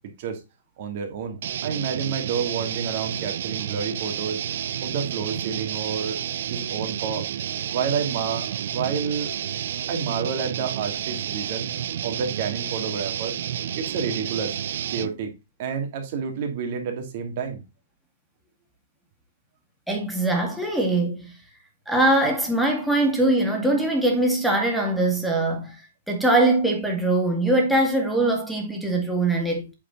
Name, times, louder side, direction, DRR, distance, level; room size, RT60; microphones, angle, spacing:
voice 1, 0.8-4.4 4.8-7.3 7.7-9.3 9.9-11.7 12.0-13.4 13.8-14.6 14.9-15.3 15.6-17.6, right 6 dB, 45° right, 2.6 m, -29 dB
sound 1, 1.4-15.1, right 10 dB, 60° right, 0.6 m, -30 dB
voice 2, 19.9-21.3 21.9-25.8 26.1-29.7, right 2 dB, ahead, 2.2 m, -22 dB
8.6 x 4.9 x 4.1 m
hypercardioid pair, 160°, 0 cm